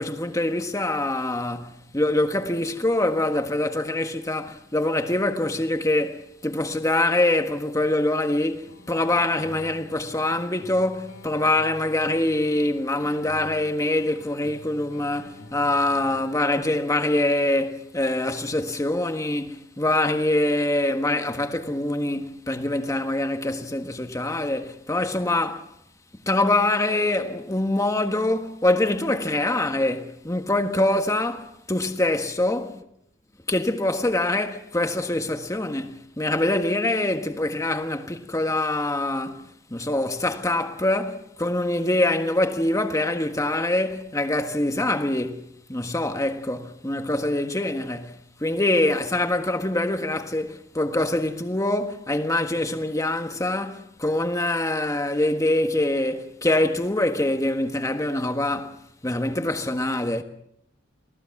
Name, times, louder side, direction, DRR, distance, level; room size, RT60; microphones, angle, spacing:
voice 1, 0.0-25.7 26.2-32.7 33.5-60.2, left 1 dB, 15° left, 1.4 m, -24 dB
sound 1, 8.7-16.6, left 1 dB, 65° left, 3.0 m, -46 dB
27.5 x 17.0 x 6.0 m
head